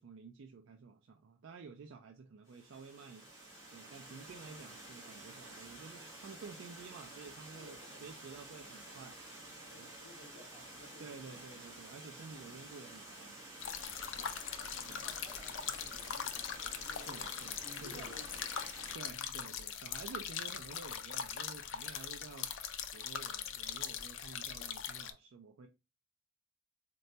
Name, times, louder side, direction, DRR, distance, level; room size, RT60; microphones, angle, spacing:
voice 1, 0.0-3.3 3.7-9.2 9.8-9.9 11.0-13.4 14.9-15.1 16.9-18.1 18.9-22.5 22.9-25.7, right 4 dB, 70° right, 0.4 m, -51 dB
Water, 2.4-18.9, right 1 dB, 15° right, 1.2 m, -51 dB
voice 2, 7.6-8.0 9.6-11.3 14.0-14.3 14.7-17.3 17.6-18.6 18.9-19.3, left 1 dB, 30° right, 2.1 m, -56 dB
sound 1, 13.6-25.1, left 8 dB, 70° left, 0.4 m, -41 dB
4.0 x 2.2 x 2.7 m
head